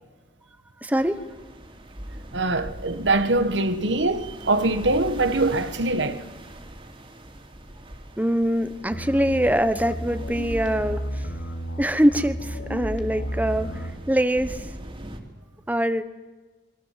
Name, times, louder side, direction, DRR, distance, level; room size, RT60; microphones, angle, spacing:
voice 1, 0.8-1.2 8.2-11.3 11.8-14.7 15.7-16.0, equal, 10° right, 1.1 m, -23 dB
sound 1, 1.0-15.2, right 1 dB, 30° right, 3.0 m, -42 dB
voice 2, 2.3-6.2, right 2 dB, 85° right, 1.5 m, -23 dB
sound 2, 8.9-14.0, equal, 80° left, 3.0 m, -32 dB
26.5 x 23.0 x 7.6 m
head